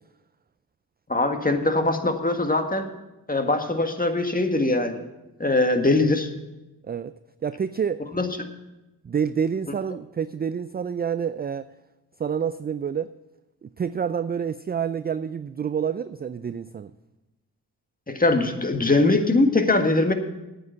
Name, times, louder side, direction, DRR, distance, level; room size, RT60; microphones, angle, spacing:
voice 1, 1.1-2.9 3.3-5.0 5.4-6.3 8.1-8.5 18.1-20.1, left 2 dB, 20° left, 6 dB, 1.7 m, -22 dB
voice 2, 7.4-8.0 9.0-11.7 12.2-13.1 13.6-16.9, right 7 dB, 25° right, 14 dB, 0.4 m, -28 dB
9.3 x 8.1 x 8.1 m, 1.0 s
supercardioid pair, 40°, 43 cm